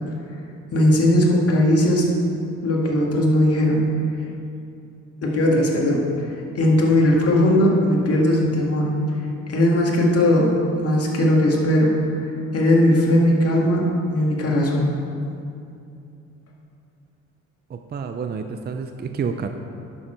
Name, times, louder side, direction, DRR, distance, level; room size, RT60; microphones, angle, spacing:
voice 1, 0.7-2.1 2.6-3.8 5.2-6.1 6.6-8.9 9.5-10.5 10.8-11.9 12.5-14.9, left 1 dB, 50° left, -2 dB, 2.0 m, -18 dB
voice 2, 17.7-19.5, right 5 dB, 35° right, 6 dB, 0.5 m, -29 dB
10.5 x 7.1 x 4.5 m, 2.6 s
cardioid pair, 90°, 30 cm